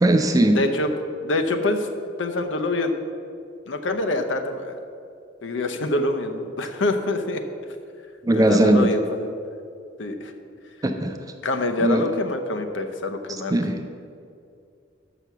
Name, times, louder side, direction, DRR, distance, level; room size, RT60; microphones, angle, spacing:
voice 1, 0.0-0.6 8.2-8.9 10.8-11.2 11.8-12.0 13.5-13.7, right 1 dB, 20° right, 6 dB, 0.4 m, -18 dB
voice 2, 0.5-0.9 1.2-1.9 2.2-2.9 3.7-4.8 5.4-7.4 8.3-9.3 10.0-10.3 11.4-13.5, left 2 dB, 85° left, 6 dB, 0.7 m, -25 dB
6.0 x 6.0 x 6.8 m, 2.4 s
head